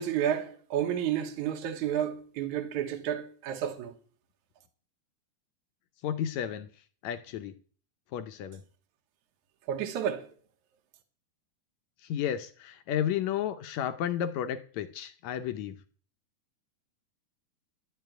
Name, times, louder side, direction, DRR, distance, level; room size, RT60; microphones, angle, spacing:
voice 1, 0.0-3.9 9.7-10.3, right 9 dB, 70° right, 2.5 m, -31 dB
voice 2, 6.0-6.7 7.0-7.5 8.1-8.6 12.1-15.8, left 10 dB, 75° left, 1.8 m, -32 dB
11.5 x 6.8 x 9.0 m
omnidirectional pair, 3.7 m